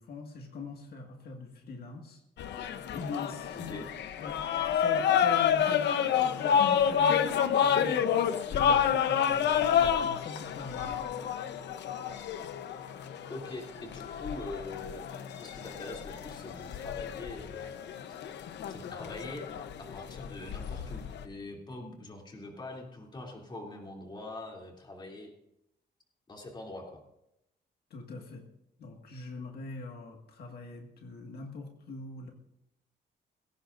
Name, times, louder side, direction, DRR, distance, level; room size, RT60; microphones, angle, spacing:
voice 1, 0.0-2.2 2.9-3.8 4.2-11.2 27.9-28.4 28.8-32.3, left 3 dB, 65° left, 2 dB, 1.9 m, -43 dB
sound 1, 2.4-21.2, left 8 dB, 80° left, 0.9 m, -29 dB
voice 2, 13.3-15.0 15.4-17.7 18.1-18.2 18.7-19.5 19.8-25.3 26.3-27.0, left 2 dB, 25° left, 0 dB, 3.0 m, -43 dB
21.0 x 17.0 x 2.6 m, 0.83 s
wide cardioid pair, 170°, 18 cm